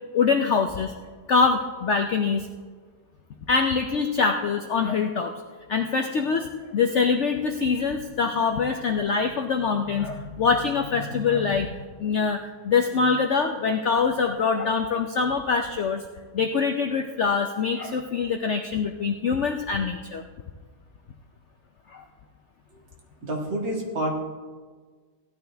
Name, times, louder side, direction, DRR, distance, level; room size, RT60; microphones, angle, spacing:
voice 1, 0.1-0.9 1.3-2.5 3.5-5.3 5.7-16.0 16.3-20.2 21.9-22.0, left 5 dB, 75° left, 5 dB, 0.6 m, -24 dB
voice 2, 23.2-24.2, right 1 dB, 90° right, -1 dB, 2.6 m, -28 dB
16.0 x 11.0 x 3.4 m, 1.5 s
omnidirectional pair, 2.0 m